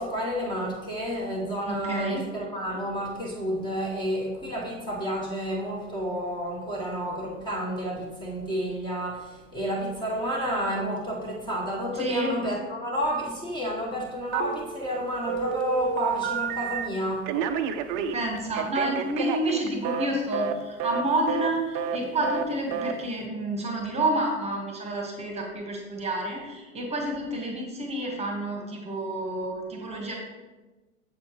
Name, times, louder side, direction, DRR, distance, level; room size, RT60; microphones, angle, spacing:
voice 1, 0.0-17.3, equal, 10° left, -3 dB, 1.3 m, -30 dB
voice 2, 1.7-2.2 11.9-12.3 18.1-30.2, right 1 dB, 15° right, 1 dB, 1.4 m, -29 dB
Telephone, 14.3-14.9 15.3-16.9 17.3-20.1 20.3-20.5 20.8-21.0 21.3-21.5 21.7-22.0 22.2-22.4 22.7-22.9, right 7 dB, 35° right, 0.6 m, -29 dB
7.4 x 7.1 x 3.1 m, 1.2 s
figure-of-eight pair, 95°, 39 cm